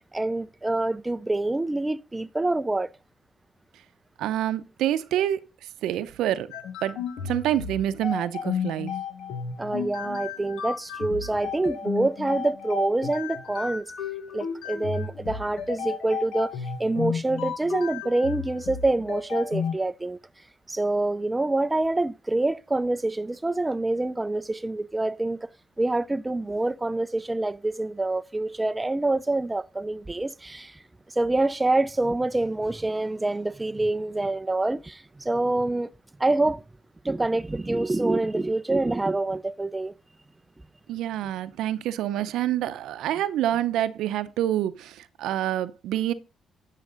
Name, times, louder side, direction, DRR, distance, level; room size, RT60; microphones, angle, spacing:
voice 1, 0.1-2.9 9.6-13.9 14.3-16.5 16.8-20.2 20.7-25.5 25.8-30.8 31.2-35.9 36.2-36.6 37.0-39.9, right 2 dB, 15° right, 0.4 m, -26 dB
voice 2, 4.2-5.4 5.8-6.5 6.8-8.9 40.9-46.1, right 12 dB, 85° right, 0.6 m, -27 dB
sound 1, 6.5-19.7, left 6 dB, 80° left, 1.5 m, -33 dB
10.5 x 6.5 x 3.8 m
cardioid pair, 90°, 0 cm